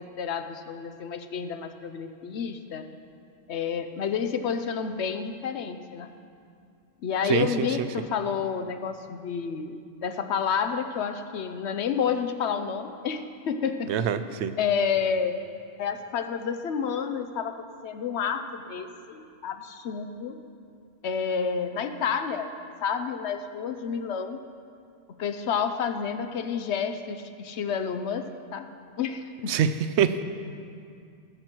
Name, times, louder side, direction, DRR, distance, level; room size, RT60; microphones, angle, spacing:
voice 1, 0.0-2.9 3.5-6.1 7.0-13.9 14.6-15.4 15.8-20.4 21.0-22.5 22.8-24.4 25.2-28.7 29.0-29.5, left 6 dB, 70° left, 8 dB, 1.0 m, -30 dB
voice 2, 7.3-7.7 13.9-14.5 29.5-29.7 30.0-30.2, right 8 dB, 75° right, 11 dB, 0.9 m, -24 dB
19.0 x 7.7 x 4.5 m, 2.3 s
omnidirectional pair, 1.2 m